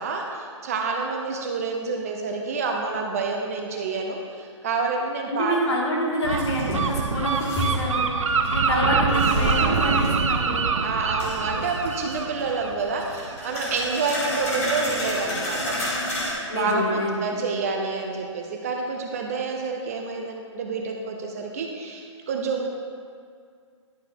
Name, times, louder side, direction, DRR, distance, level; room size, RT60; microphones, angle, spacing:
voice 1, 0.0-5.6 8.7-9.8 10.8-15.8 16.2-22.7, right 4 dB, 30° right, 2 dB, 0.6 m, -28 dB
voice 2, 5.3-8.1 8.5-10.7 16.5-17.4, equal, 60° left, -3 dB, 2.2 m, -27 dB
Gull seagull, 6.2-13.7, right 5 dB, 80° right, 0.7 m, -25 dB
sound 1, 6.3-8.0 8.3-10.4 11.2-12.6 13.0-16.3, left 1 dB, 15° left, 1.8 m, -31 dB
11.5 x 4.9 x 4.4 m, 2.2 s
hypercardioid pair, 170°, 16 cm